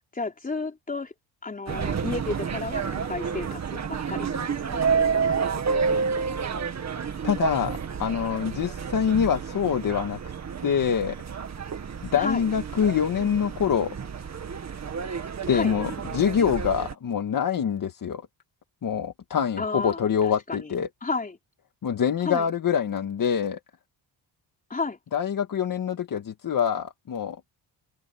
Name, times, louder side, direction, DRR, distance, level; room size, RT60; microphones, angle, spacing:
voice 1, 0.1-1.1 1.4-6.3 12.1-12.4 15.5-15.7 19.6-20.0 20.5-20.7 21.0-21.4 22.2-22.5 24.7-25.0, left 3 dB, 20° left, 4.3 m, -33 dB
sound 1, 1.7-16.9, right 6 dB, 35° right, 2.0 m, -30 dB
voice 2, 7.2-10.2 10.6-11.2 12.0-14.0 15.5-18.3 18.8-20.9 21.8-23.6 25.1-27.4, left 7 dB, 45° left, 1.9 m, -25 dB
open air
cardioid pair, 160°, 45 cm